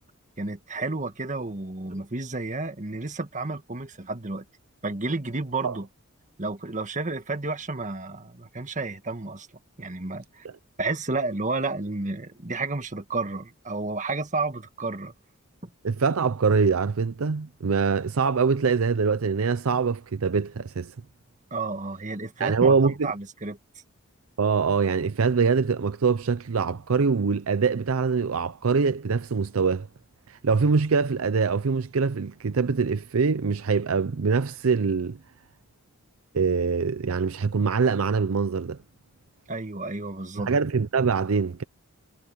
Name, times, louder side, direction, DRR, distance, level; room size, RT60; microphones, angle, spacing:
voice 1, 0.4-4.4 4.8-5.9 6.4-9.5 9.8-10.5 10.8-15.1 21.5-23.6 39.5-40.5, right 3 dB, 35° right, 1.7 m, -31 dB
voice 2, 15.8-20.9 22.4-23.1 24.4-29.9 30.3-35.2 36.3-38.8 40.5-41.6, right 5 dB, 70° right, 0.6 m, -24 dB
head